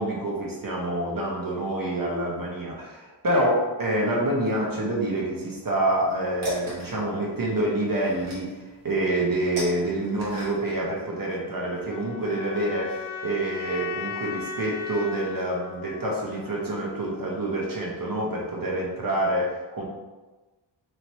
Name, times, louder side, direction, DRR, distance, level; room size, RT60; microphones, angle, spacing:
voice 1, 0.0-8.5 8.8-19.8, right 1 dB, 45° right, -2 dB, 0.9 m, -27 dB
sound 1, 5.9-10.9, right 2 dB, 90° right, 1.4 m, -38 dB
sound 2, 11.9-16.9, left 6 dB, 80° left, 0.5 m, -37 dB
3.2 x 2.8 x 4.1 m, 1.2 s
wide cardioid pair, 125°, 47 cm